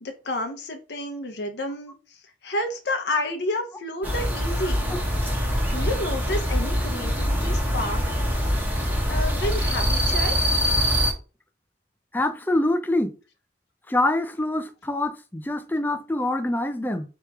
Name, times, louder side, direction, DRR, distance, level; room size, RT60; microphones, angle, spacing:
voice 1, 0.0-1.9 2.4-4.8 5.7-8.0 8.6-8.8 9.1-10.4, left 1 dB, 70° left, 0.7 m, -30 dB
sound 1, 4.0-11.1, equal, 10° right, 0.9 m, -24 dB
voice 2, 12.1-13.1 13.9-17.0, left 1 dB, 10° left, 0.4 m, -25 dB
3.5 x 3.0 x 4.6 m
head